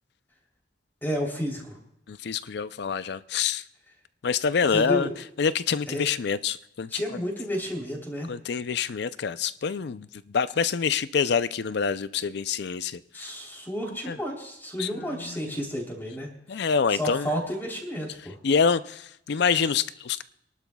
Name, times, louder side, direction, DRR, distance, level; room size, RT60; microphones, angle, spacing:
voice 1, 1.0-1.8 4.7-5.1 5.9-6.0 6.9-8.3 13.1-16.3 16.5-16.7 16.9-18.4, equal, 10° left, 3.2 m, -31 dB
voice 2, 2.1-3.6 4.2-5.1 5.4-7.2 8.3-13.0 14.1-14.2 14.8-15.6 16.5-17.3 18.4-20.2, left 6 dB, 65° left, 0.5 m, -26 dB
27.0 x 12.0 x 2.3 m
head